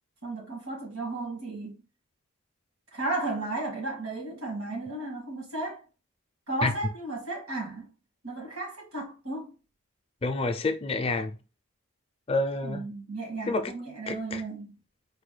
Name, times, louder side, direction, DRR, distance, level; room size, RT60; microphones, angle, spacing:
voice 1, 0.2-1.8 2.9-5.8 6.5-7.9 8.2-9.6 12.6-14.8, right 2 dB, 85° right, 1.9 m, -34 dB
voice 2, 10.2-11.4 12.3-12.8 13.5-13.7 14.1-14.4, left 2 dB, 25° left, 0.4 m, -28 dB
4.4 x 2.2 x 3.2 m
head